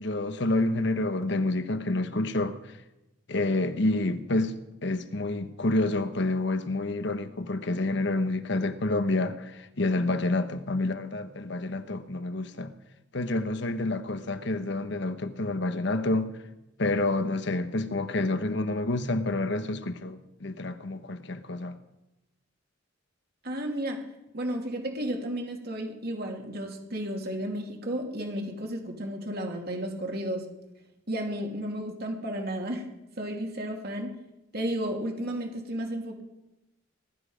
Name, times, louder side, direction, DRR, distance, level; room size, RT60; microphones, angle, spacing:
voice 1, 0.0-2.6 3.3-4.6 4.8-12.7 13.1-16.4 16.8-21.8, left 2 dB, 65° left, 1.1 m, -28 dB
voice 2, 23.4-24.0 24.3-30.5 31.1-32.9 33.2-34.2 34.5-36.2, right 1 dB, 55° right, 2.8 m, -33 dB
20.5 x 12.5 x 5.1 m
head